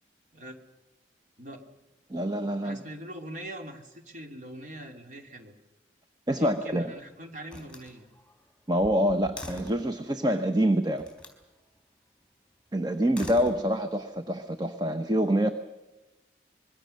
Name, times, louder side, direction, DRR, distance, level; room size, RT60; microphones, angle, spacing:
voice 1, 2.1-2.8 6.3-6.9 8.7-11.1 12.7-15.5, equal, 25° right, 8 dB, 1.0 m, -26 dB
voice 2, 2.6-5.5 6.4-8.1, right 1 dB, 45° right, 3 dB, 3.0 m, -42 dB
Slam, 6.4-7.0 7.5-9.9 11.0-11.4 12.9-14.1, left 1 dB, 5° left, 4.3 m, -44 dB
26.0 x 22.5 x 6.6 m, 1.1 s
head